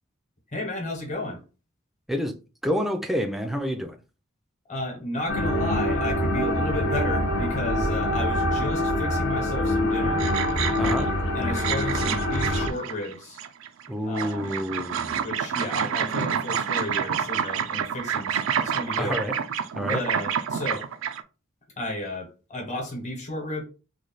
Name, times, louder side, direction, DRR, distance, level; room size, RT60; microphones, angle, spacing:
voice 1, 0.5-1.4 4.7-10.2 10.8-13.4 14.1-14.4 15.2-19.2 19.9-20.9 21.8-23.6, left 1 dB, 35° left, 1.1 m, -33 dB
voice 2, 2.6-4.0 10.8-11.1 13.9-15.3 19.0-19.3 19.7-20.0, equal, ahead, 0.4 m, -28 dB
sound 1, 5.3-12.7, left 1 dB, 55° left, 0.7 m, -25 dB
sound 2, 10.2-11.1 11.5-13.9 14.1-21.2, right 8 dB, 85° right, 0.4 m, -28 dB
3.2 x 2.2 x 4.0 m
head